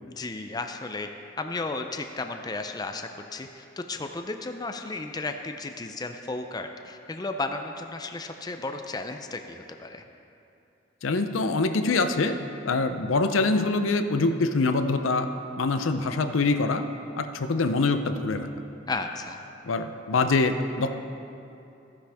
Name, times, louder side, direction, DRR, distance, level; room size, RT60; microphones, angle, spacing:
voice 1, 0.1-1.1 1.4-10.0 18.9-19.4, left 3 dB, 20° left, 6 dB, 0.5 m, -34 dB
voice 2, 11.0-12.4 12.7-15.3 15.6-16.8 17.2-18.5 19.7-20.9, left 3 dB, 90° left, 8 dB, 0.6 m, -24 dB
14.5 x 9.9 x 3.5 m, 2.8 s
head